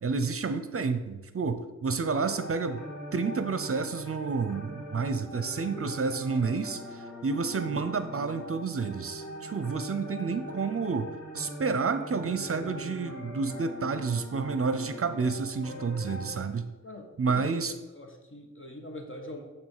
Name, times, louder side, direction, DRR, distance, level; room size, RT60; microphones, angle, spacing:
voice 1, 0.0-2.8 3.1-11.1 11.3-16.7 17.2-17.7, right 4 dB, 50° right, 10 dB, 0.6 m, -30 dB
sound 1, 2.0-16.4, equal, 70° left, 2.2 m, -42 dB
voice 2, 16.8-19.4, left 1 dB, 45° left, 3 dB, 1.4 m, -43 dB
8.7 x 3.7 x 6.6 m, 1.1 s
wide cardioid pair, 90°, 29 cm